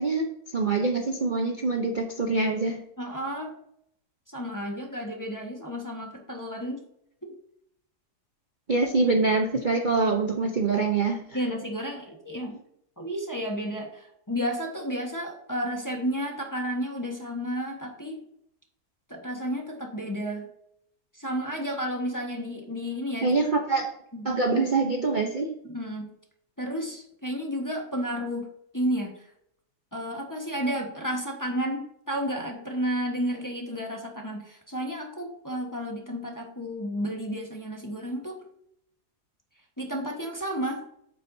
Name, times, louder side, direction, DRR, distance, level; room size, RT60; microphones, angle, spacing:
voice 1, 0.0-2.8 8.7-11.2 23.2-23.9 24.2-25.6, right 3 dB, 40° right, 2 dB, 0.8 m, -25 dB
voice 2, 3.0-3.6 4.3-6.8 7.2-7.3 11.3-12.6 13.0-18.2 19.1-20.5 21.1-23.4 24.1-24.3 25.6-26.1 26.6-28.5 28.7-29.3 29.9-38.4 39.8-40.8, equal, 15° left, 1 dB, 1.2 m, -32 dB
8.9 x 8.5 x 2.7 m, 0.71 s
omnidirectional pair, 1.7 m